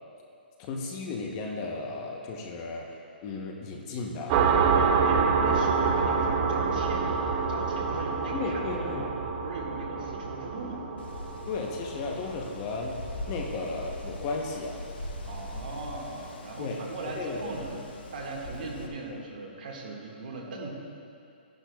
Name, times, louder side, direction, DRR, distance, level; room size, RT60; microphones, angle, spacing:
voice 1, 0.6-4.4 8.3-9.1 11.5-13.0 13.3-14.8 16.6-16.8 17.1-17.4, left 3 dB, 25° left, 1 dB, 0.8 m, -34 dB
sound 1, 4.3-13.6, right 5 dB, 25° right, 0.5 m, -27 dB
voice 2, 4.7-9.1 9.4-10.8 15.3-17.8 18.1-20.7, right 3 dB, 55° right, -1 dB, 1.7 m, -39 dB
Wind, 11.0-18.9, left 2 dB, 75° left, 1.4 m, -41 dB
14.0 x 10.5 x 2.3 m, 2.5 s
hypercardioid pair, 165°, 6 cm